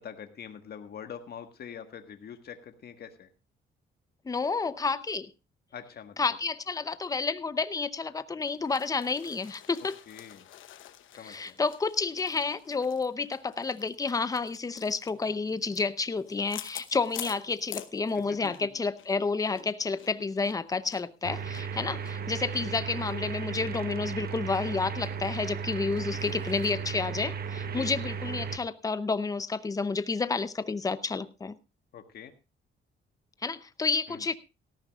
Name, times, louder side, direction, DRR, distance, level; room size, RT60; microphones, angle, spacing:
voice 1, 0.0-3.3 5.7-6.1 9.8-10.5 11.2-11.6 18.1-18.7 27.7-27.9 31.9-32.3 34.1-34.2, left 8 dB, 55° left, 7 dB, 1.6 m, -44 dB
voice 2, 4.2-5.3 6.2-10.0 11.2-31.6 33.4-34.4, left 4 dB, 15° left, 14 dB, 0.7 m, -30 dB
sound 1, 8.4-18.7 19.0-19.1 19.5-22.7 23.0-23.1 23.5-23.6 24.0-24.6 25.0-25.1 25.4-26.7, left 12 dB, 85° left, 1.0 m, -48 dB
sound 2, 21.2-28.6, right 6 dB, 50° right, 1.0 m, -35 dB
18.0 x 14.0 x 2.4 m, 0.27 s
cardioid pair, 125°, 20 cm